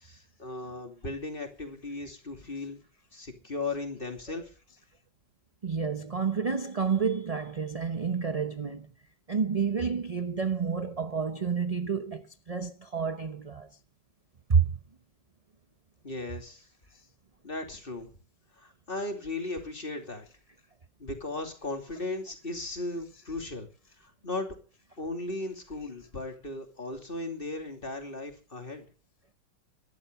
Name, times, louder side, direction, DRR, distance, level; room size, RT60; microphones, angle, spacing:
voice 1, 0.0-2.8 3.1-4.5 16.0-16.7 17.4-18.2 18.6-20.3 21.0-23.7 24.0-24.5 25.0-28.9, left 2 dB, 30° left, 2.9 m, -37 dB
voice 2, 5.6-8.9 9.3-13.7 14.5-14.7, right 6 dB, 30° right, 0.7 m, -29 dB
14.5 x 12.0 x 6.8 m
omnidirectional pair, 1.8 m